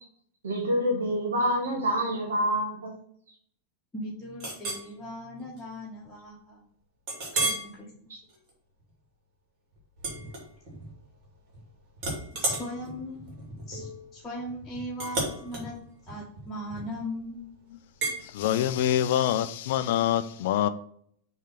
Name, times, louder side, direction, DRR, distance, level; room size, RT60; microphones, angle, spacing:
voice 1, 0.4-2.9 7.3-7.4 8.1-8.2, equal, 65° right, 2 dB, 1.8 m, -27 dB
voice 2, 3.9-6.6 7.4-7.9 12.4-13.2 13.7-15.8 16.1-17.4, left 1 dB, 10° left, -7 dB, 1.6 m, -38 dB
Chink clink, 4.4-4.9 5.4-5.6 6.0-6.1 7.1-7.7 8.2-8.5 10.0-10.9 11.2-11.6 12.0-17.1 18.0-18.2, right 2 dB, 40° right, 2.5 m, -33 dB
voice 3, 18.3-20.7, left 11 dB, 55° left, 13 dB, 0.4 m, -25 dB
6.6 x 3.3 x 5.6 m, 0.64 s
figure-of-eight pair, 90°, 0 cm